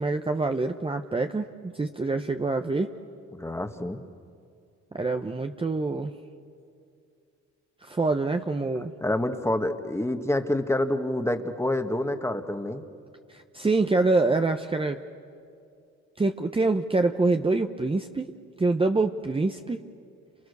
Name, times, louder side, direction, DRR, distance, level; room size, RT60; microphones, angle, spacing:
voice 1, 0.0-1.5 1.7-2.9 4.9-6.1 7.8-8.9 13.3-15.0 16.2-18.3 18.6-19.8, right 3 dB, 20° right, 5 dB, 0.9 m, -25 dB
voice 2, 3.3-4.0 9.0-12.8, left 1 dB, 10° left, 7 dB, 1.7 m, -27 dB
30.0 x 28.0 x 6.8 m, 2.3 s
cardioid pair, 90°, 30 cm